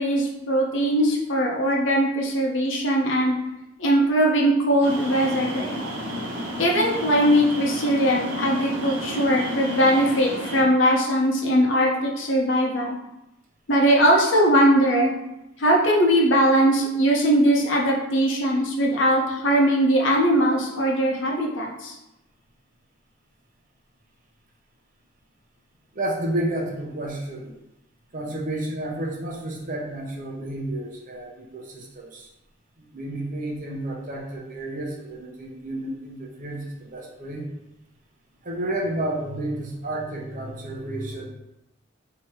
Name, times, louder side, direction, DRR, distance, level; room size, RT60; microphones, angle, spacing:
voice 1, 0.0-3.4 3.8-5.8 6.6-13.0 13.7-15.1 15.6-21.9, equal, 65° left, -2 dB, 0.9 m, -20 dB
sound 1, 4.8-10.6, equal, 70° right, 1.0 m, -32 dB
voice 2, 25.9-27.5 28.1-32.3 32.8-37.5 38.4-41.3, right 1 dB, 40° right, -1 dB, 0.8 m, -31 dB
3.4 x 2.9 x 4.7 m, 0.92 s
head